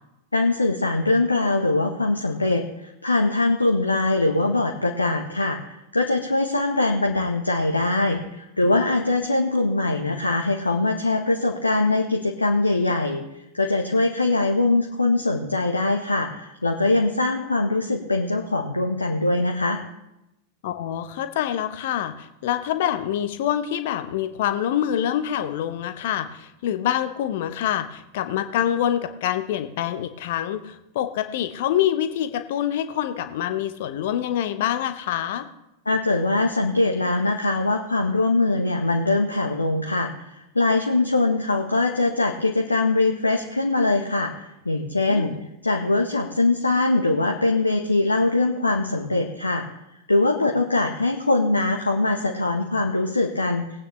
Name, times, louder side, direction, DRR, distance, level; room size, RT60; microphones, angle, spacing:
voice 1, 0.3-5.6 5.9-13.2 13.5-19.8 35.9-45.3 45.6-49.6 50.1-53.6, left 2 dB, 80° left, 2 dB, 1.1 m, -22 dB
voice 2, 20.6-35.5 45.1-45.5, left 11 dB, 55° left, 9 dB, 1.0 m, -26 dB
19.5 x 9.1 x 3.2 m, 0.88 s
figure-of-eight pair, 90°, 0 cm